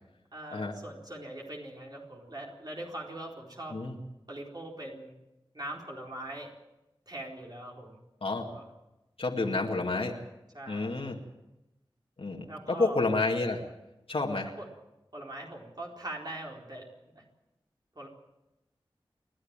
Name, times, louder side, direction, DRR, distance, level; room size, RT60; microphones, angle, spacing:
voice 1, 0.3-3.8 4.3-5.1 5.5-6.5 7.1-8.0 8.5-8.6 10.5-11.1 12.5-13.0 14.6-14.7 15.1-16.9 17.1-17.2 18.0-18.1, right 1 dB, 45° right, -2 dB, 4.3 m, -42 dB
voice 2, 9.2-10.2 10.7-11.2 12.2-13.6 14.1-14.5, left 3 dB, 75° left, 0 dB, 2.3 m, -30 dB
29.0 x 11.5 x 9.0 m, 0.98 s
wide cardioid pair, 65°, 10 cm